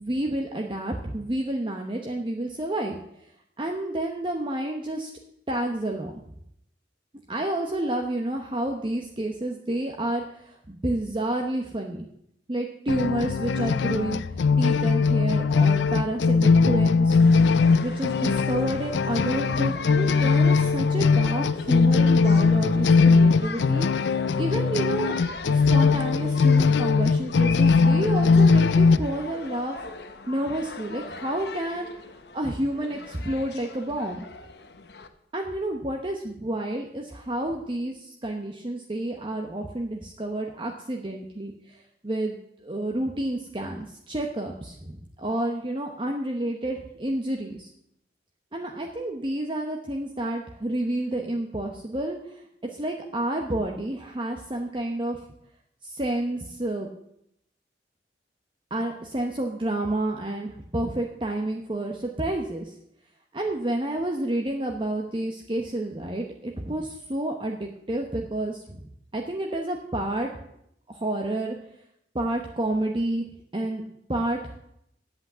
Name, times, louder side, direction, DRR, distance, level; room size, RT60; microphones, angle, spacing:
voice 1, 0.0-3.3 3.6-5.1 5.5-6.2 7.3-12.1 12.5-14.2 14.6-17.2 17.8-25.2 25.5-29.8 30.3-31.9 32.3-34.3 35.3-42.3 42.6-47.7 48.5-52.4 52.7-55.2 55.8-56.9 58.7-62.7 63.3-68.8 69.1-70.3 70.9-71.6 72.1-73.3 73.5-73.8 74.1-74.6, right 1 dB, 30° right, 2 dB, 0.9 m, -30 dB
sound 1, 12.9-29.0, left 4 dB, 80° left, 0.4 m, -20 dB
sound 2, 17.2-35.1, left 4 dB, 65° left, 1.0 m, -40 dB
8.8 x 8.0 x 8.4 m, 0.76 s
head